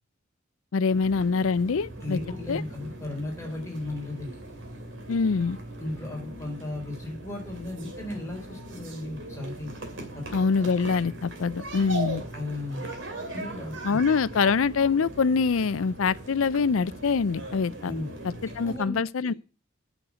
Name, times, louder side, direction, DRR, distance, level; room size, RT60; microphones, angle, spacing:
voice 1, 0.7-2.2 2.5-2.6 5.1-5.6 10.3-12.2 13.8-17.9 18.6-19.3, left 5 dB, 90° left, 0.5 m, -24 dB
sound 1, 0.9-18.8, right 1 dB, 65° right, 2.6 m, -40 dB
voice 2, 2.0-4.4 5.8-9.7 10.1-10.2 12.3-12.9 13.3-14.0 17.8-18.1 18.6-19.3, left 2 dB, 15° left, 3.7 m, -35 dB
9.1 x 6.5 x 8.2 m
head